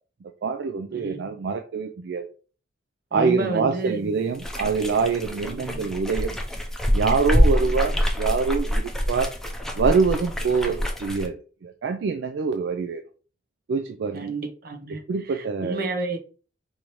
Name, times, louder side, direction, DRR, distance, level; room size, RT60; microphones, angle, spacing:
voice 1, 0.2-2.3 3.1-6.4 6.9-9.3 9.8-13.0 13.7-14.3 14.9-15.8, right 5 dB, 75° right, 0.4 m, -25 dB
voice 2, 0.9-1.3 3.1-4.1 5.5-5.9 7.6-8.0 14.1-15.0 15.3-16.2, right 2 dB, 55° right, 0.8 m, -31 dB
sound 1, 4.3-11.3, equal, 5° left, 0.5 m, -25 dB
4.8 x 2.7 x 3.0 m
head